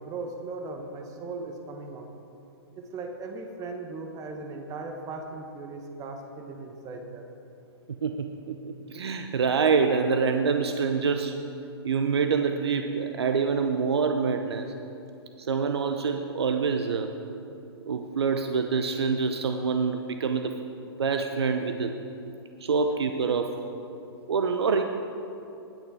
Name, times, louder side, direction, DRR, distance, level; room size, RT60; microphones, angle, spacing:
voice 1, 0.0-2.1 2.8-7.2, right 3 dB, 25° right, 4 dB, 1.1 m, -38 dB
voice 2, 7.9-11.4 11.8-14.7 15.4-17.1 17.8-20.5 21.0-21.9 22.6-23.5 24.3-24.8, right 5 dB, 75° right, 6 dB, 0.7 m, -26 dB
19.0 x 6.8 x 4.7 m, 2.8 s
hypercardioid pair, 120°, 14 cm